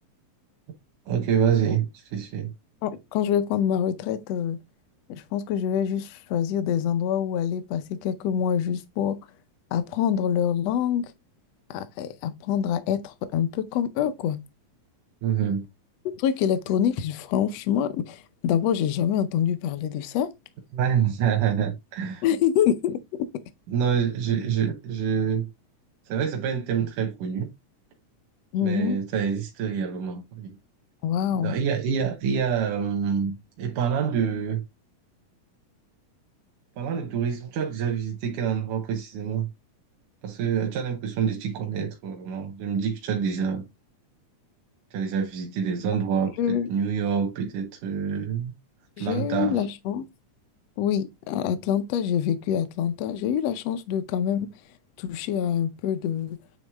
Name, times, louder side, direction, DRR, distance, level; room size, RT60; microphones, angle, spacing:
voice 1, 1.1-2.5 15.2-15.7 20.7-22.3 23.7-25.5 26.1-27.5 28.6-30.5 31.3-34.6 36.8-39.5 40.2-43.7 44.9-48.5 49.0-49.6, right 7 dB, 90° right, 2.5 m, -26 dB
voice 2, 2.8-4.6 5.1-9.2 9.7-11.1 11.7-14.4 16.1-20.3 22.2-23.0 28.5-29.0 31.0-31.5 46.4-46.7 49.0-50.0 50.8-54.5 55.0-56.4, left 9 dB, 75° left, 1.6 m, -26 dB
9.0 x 3.1 x 3.4 m
omnidirectional pair, 3.5 m